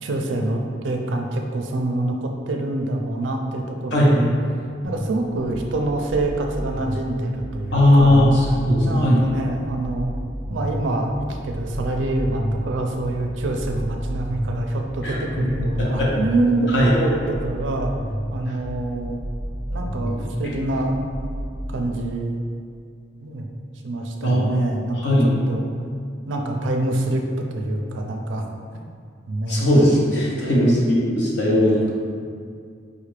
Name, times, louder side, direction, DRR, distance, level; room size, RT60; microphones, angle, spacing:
voice 1, 0.0-4.3 4.8-8.3 8.8-10.1 10.5-17.9 18.3-19.2 19.7-21.0 21.7-22.4 23.2-23.5 23.8-25.7 26.3-27.2 27.5-28.4 29.3-29.7 30.3-30.8, right 2 dB, 80° right, 2 dB, 0.4 m, -26 dB
voice 2, 3.9-4.2 7.7-8.3 8.6-9.3 15.0-15.2 15.8-16.1 16.7-16.9 24.2-24.6 25.0-25.3 29.5-31.9, left 1 dB, 65° left, -5 dB, 0.9 m, -18 dB
sound 1, 4.8-21.7, equal, 20° left, 1.1 m, -31 dB
5.0 x 2.4 x 3.2 m, 2.2 s
head